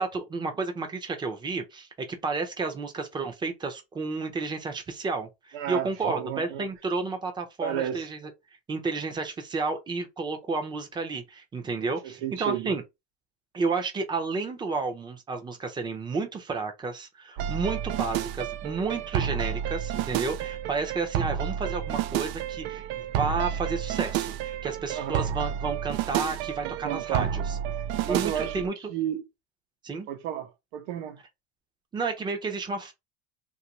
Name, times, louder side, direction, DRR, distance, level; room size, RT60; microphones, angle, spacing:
voice 1, 0.0-1.9 2.2-8.2 8.7-12.8 13.5-22.9 23.2-27.4 28.1-28.7 29.8-30.1 31.9-32.9, right 4 dB, 15° right, 0.7 m, -31 dB
voice 2, 5.5-6.7 7.6-8.1 11.8-12.7 24.9-25.2 26.6-27.3 28.0-28.6 28.9-29.2 30.1-31.2, right 10 dB, 75° right, 1.0 m, -32 dB
sound 1, 17.4-28.7, right 10 dB, 55° right, 0.5 m, -30 dB
2.8 x 2.7 x 2.9 m
supercardioid pair, 135°, 32 cm